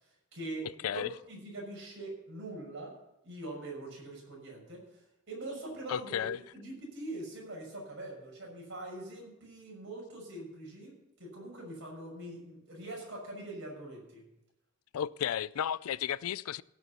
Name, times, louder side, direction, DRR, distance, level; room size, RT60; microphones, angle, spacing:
voice 1, 0.0-3.0 3.2-14.3, right 2 dB, 55° right, 6.1 m, -43 dB
voice 2, 5.9-6.4 14.9-16.6, left 9 dB, 75° left, 0.4 m, -33 dB
16.0 x 7.2 x 7.0 m
head